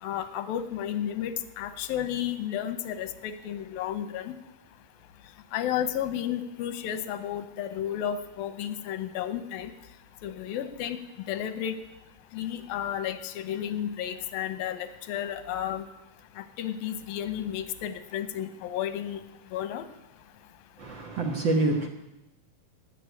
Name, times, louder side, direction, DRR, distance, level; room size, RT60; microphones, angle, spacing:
voice 1, 0.0-4.3 5.5-9.7 10.2-11.0 11.2-11.8 12.3-15.9 16.4-19.2 19.5-19.8, left 10 dB, 90° left, 12 dB, 2.7 m, -32 dB
voice 2, 20.8-21.9, right 2 dB, 55° right, 2 dB, 1.3 m, -26 dB
18.5 x 7.1 x 9.4 m, 0.91 s
omnidirectional pair, 4.0 m